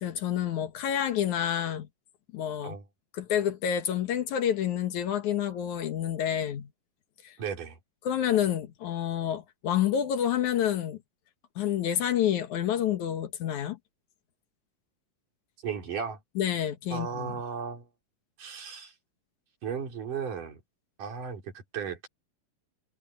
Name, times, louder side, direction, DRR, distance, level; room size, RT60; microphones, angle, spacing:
voice 1, 0.0-1.9 2.3-2.8 3.1-6.7 7.2-7.4 8.0-11.0 11.6-13.8 16.4-17.4, left 10 dB, 70° left, 2.7 m, -28 dB
voice 2, 7.4-7.8 15.6-16.2 16.9-17.9 18.4-18.9 19.6-20.6 21.0-22.1, right 6 dB, 75° right, 5.5 m, -35 dB
omnidirectional pair, 3.7 m